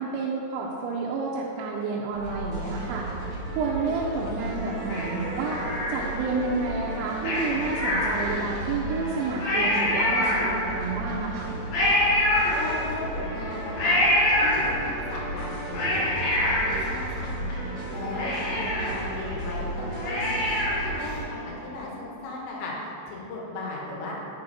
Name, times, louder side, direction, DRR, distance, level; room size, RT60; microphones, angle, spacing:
voice 1, 0.0-3.1 3.6-5.6 5.9-11.5, right 4 dB, 85° right, -3 dB, 2.8 m, -30 dB
sound 1, 2.1-21.2, right 2 dB, 60° right, 1.8 m, -34 dB
Cat, 4.9-6.3 7.2-8.6 9.0-9.1 9.4-10.9 11.7-13.1 13.8-15.0 15.5-17.5 17.8-17.9 18.2-21.0 21.3-21.4, left 1 dB, 55° left, 2.1 m, -25 dB
voice 2, 12.5-16.0 16.3-17.5 17.9-24.1, left 2 dB, 75° left, -4 dB, 3.4 m, -36 dB
8.7 x 5.6 x 4.0 m, 2.8 s
omnidirectional pair, 5.5 m